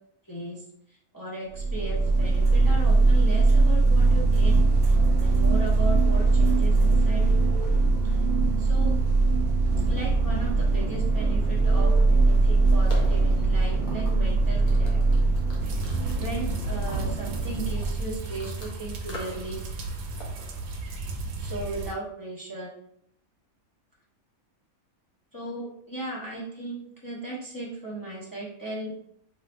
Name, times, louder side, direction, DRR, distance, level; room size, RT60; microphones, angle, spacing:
voice 1, 0.3-0.6 1.1-7.2 8.0-8.2 8.6-8.9 9.9-15.2 16.2-19.6 19.9-20.0 21.4-22.7 25.3-28.9, right 2 dB, 30° left, -5 dB, 0.4 m, -36 dB
sound 1, 1.5-18.1, right 3 dB, 65° right, 0.5 m, -21 dB
sound 2, 12.6-18.7 19.0-19.5 19.8-20.8, left 1 dB, 75° left, 1.2 m, -44 dB
sound 3, 15.6-21.9, right 3 dB, 90° right, 1.0 m, -35 dB
3.2 x 2.7 x 2.5 m, 0.72 s
omnidirectional pair, 1.5 m